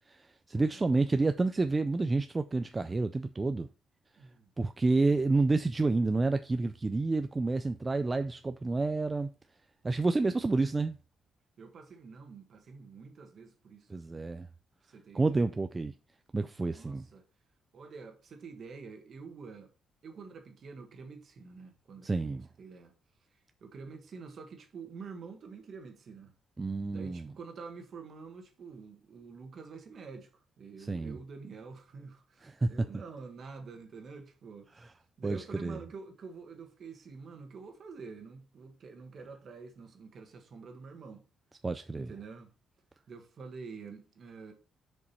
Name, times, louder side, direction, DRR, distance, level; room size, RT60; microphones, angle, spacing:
voice 1, 0.0-3.7 4.6-9.3 9.8-11.0 13.9-14.5 15.1-15.9 16.3-17.0 22.0-22.4 26.6-27.2 30.8-31.2 32.4-32.7 35.2-35.8 41.6-42.1, right 3 dB, 15° right, 0.3 m, -29 dB
voice 2, 4.2-4.5 11.6-14.0 14.8-15.4 16.7-17.3 17.7-19.7 20.0-22.9 23.6-26.3 26.9-41.2 41.9-42.5 43.1-44.5, right 5 dB, 45° right, 1.4 m, -47 dB
6.9 x 5.2 x 4.3 m
cardioid pair, 170°, 0 cm